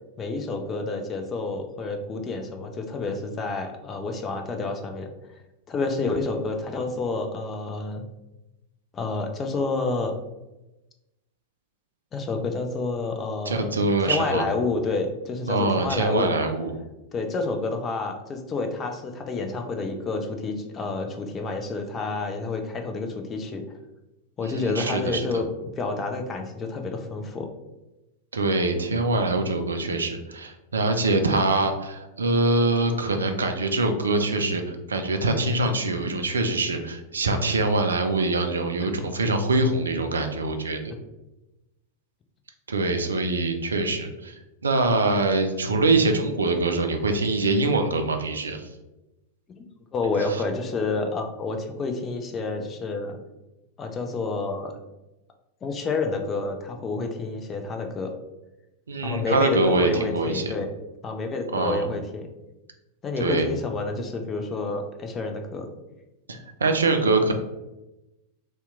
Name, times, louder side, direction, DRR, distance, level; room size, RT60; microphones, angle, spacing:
voice 1, 0.2-5.1 5.7-8.1 8.9-10.1 12.1-16.3 17.1-23.6 24.4-27.5 49.9-53.2 53.8-54.7 55.6-58.1 59.0-60.7 61.0-62.3 63.0-65.7, left 3 dB, 25° left, 5 dB, 0.4 m, -29 dB
voice 2, 13.5-14.4 15.5-16.7 24.4-25.3 28.3-40.9 42.7-44.4 44.6-48.7 50.3-50.4 58.9-60.5 61.5-61.8 63.2-63.5 66.3-67.3, right 2 dB, 70° right, 6 dB, 0.4 m, -24 dB
2.8 x 2.2 x 3.5 m, 0.99 s
figure-of-eight pair, 90°, 0 cm